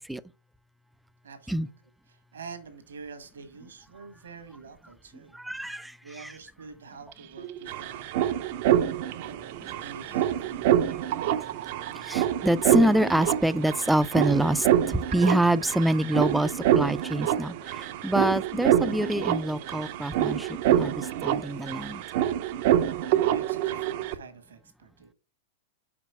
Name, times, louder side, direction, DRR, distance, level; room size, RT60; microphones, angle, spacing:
voice 1, 1.2-1.7 2.1-5.4 6.0-8.3 9.2-11.0 23.2-25.1, right 5 dB, 80° right, 1.3 m, -46 dB
voice 2, 5.4-5.9 6.2-6.3 12.1-14.7 14.9-17.5 18.0-22.0, right 1 dB, 5° right, 0.4 m, -25 dB
sound 1, 7.1-7.2 7.4-24.1, right 11 dB, 55° right, 0.5 m, -26 dB
5.1 x 4.5 x 4.4 m
hypercardioid pair, 100°, 0 cm